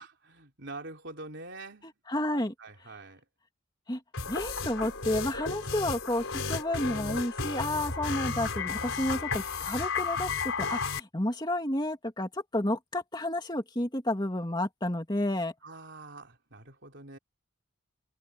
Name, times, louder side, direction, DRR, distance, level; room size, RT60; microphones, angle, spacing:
voice 1, 0.0-1.9 2.3-3.2 15.6-17.2, right 2 dB, 60° right, 3.7 m, -45 dB
voice 2, 2.1-2.5 3.9-4.0 4.3-10.3 10.6-15.5, left 1 dB, 20° left, 2.4 m, -31 dB
sound 1, 4.1-11.0, left 4 dB, 75° left, 4.6 m, -33 dB
head